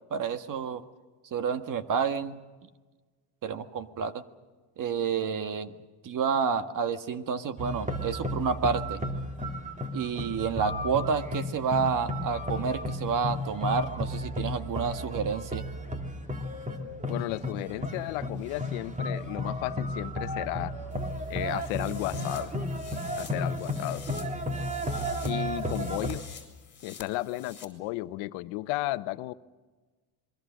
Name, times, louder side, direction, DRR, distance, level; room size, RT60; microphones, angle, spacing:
voice 1, 0.1-0.8 1.3-2.4 3.4-4.2 4.8-5.7 6.0-9.0 9.9-15.6, right 6 dB, 40° right, 1.7 m, -29 dB
sound 1, 7.6-26.2, left 1 dB, 15° right, 2.7 m, -33 dB
voice 2, 17.1-20.7 21.3-22.5 23.2-24.0 25.2-26.2 26.8-29.3, left 18 dB, 75° left, 1.0 m, -34 dB
sound 2, 20.9-27.7, left 5 dB, 25° left, 4.6 m, -49 dB
27.5 x 23.0 x 6.4 m
supercardioid pair, 110°, 47 cm